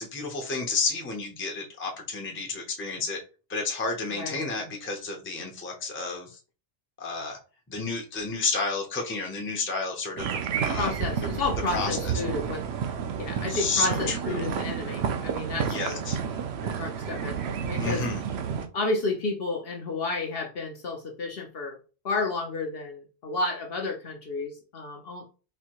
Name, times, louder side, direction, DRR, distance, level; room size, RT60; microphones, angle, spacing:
voice 1, 0.0-3.2 3.5-6.4 7.0-7.4 7.7-10.3 10.6-10.9 11.7-12.1 13.5-14.5 15.6-16.2 17.8-18.2, left 4 dB, 15° left, 0.5 m, -31 dB
sound 1, 10.2-18.7, right 7 dB, 65° right, 0.7 m, -30 dB
voice 2, 10.8-12.6 13.2-16.0 16.7-17.4 17.6-18.0 18.7-21.8 22.0-25.3, left 3 dB, 55° left, 0.8 m, -31 dB
4.2 x 2.7 x 2.9 m
omnidirectional pair, 1.3 m